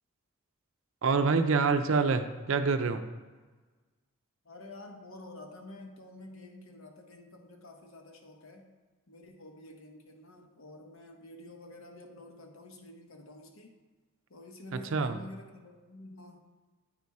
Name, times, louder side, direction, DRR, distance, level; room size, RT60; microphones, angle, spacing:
voice 1, 1.0-3.0 14.7-15.2, right 4 dB, 65° right, 9 dB, 0.5 m, -26 dB
voice 2, 4.4-8.7 9.1-13.8 14.3-16.5, left 1 dB, 65° left, 3 dB, 0.9 m, -49 dB
8.7 x 4.1 x 4.7 m, 1.3 s
head